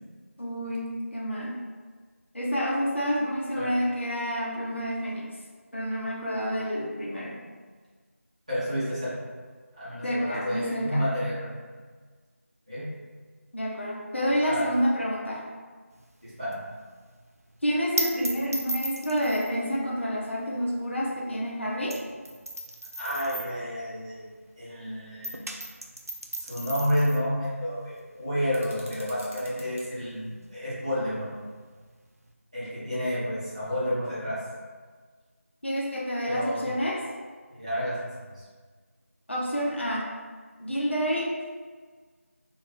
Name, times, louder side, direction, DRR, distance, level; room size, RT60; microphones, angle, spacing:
voice 1, 0.4-1.6 2.3-5.3 5.7-7.4 10.0-11.0 13.5-15.4 17.6-22.0 35.6-37.0 39.3-40.0 40.6-41.3, equal, 50° left, -4 dB, 0.6 m, -28 dB
voice 2, 8.5-9.1 9.8-11.5 12.7-12.8 14.5-14.7 16.2-16.6 23.0-24.2 24.6-25.4 26.4-31.3 32.5-34.4 36.2-36.6 37.5-38.4, equal, 25° right, -11 dB, 0.8 m, -30 dB
sound 1, 15.9-24.8 25.1-32.3, right 1 dB, 90° right, 0.4 m, -38 dB
sound 2, 28.5-29.9, equal, 55° right, 0.7 m, -48 dB
2.3 x 2.3 x 3.7 m, 1.5 s
figure-of-eight pair, 170°, 8 cm